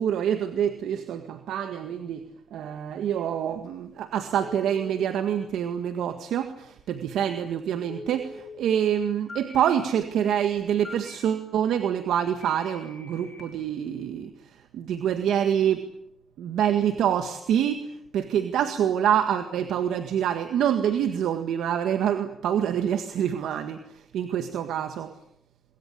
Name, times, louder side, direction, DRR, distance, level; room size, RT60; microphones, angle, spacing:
voice 1, 0.0-2.2 2.5-14.3 14.7-15.8 16.4-17.9 18.1-23.8 24.1-25.1, right 9 dB, 85° right, 8 dB, 1.8 m, -26 dB
Telephone, 4.4-4.9 7.9-8.4 9.3-9.6 10.8-11.1 12.4-13.4, left 2 dB, 40° left, 6.5 m, -42 dB
25.0 x 23.0 x 8.6 m, 0.74 s
cardioid pair, 80°, 0 cm